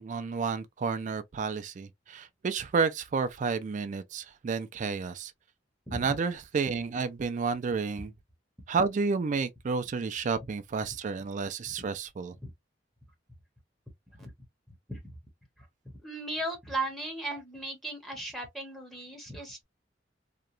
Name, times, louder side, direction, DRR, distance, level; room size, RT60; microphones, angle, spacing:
voice 1, 0.0-5.3 5.9-8.1 8.7-12.4, right 5 dB, 40° right, 0.4 m, -31 dB
voice 2, 16.0-19.6, right 2 dB, ahead, 0.7 m, -36 dB
2.9 x 2.2 x 2.4 m
head